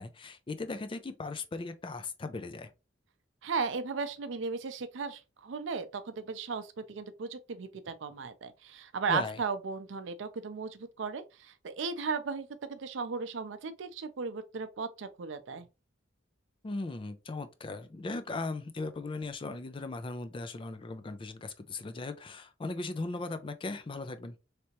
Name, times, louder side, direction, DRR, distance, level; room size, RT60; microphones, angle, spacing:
voice 1, 0.0-2.7 9.1-9.4 16.6-24.3, left 3 dB, 30° left, 0.4 m, -38 dB
voice 2, 3.4-15.7, right 5 dB, 75° right, 0.5 m, -36 dB
3.3 x 2.8 x 2.9 m
head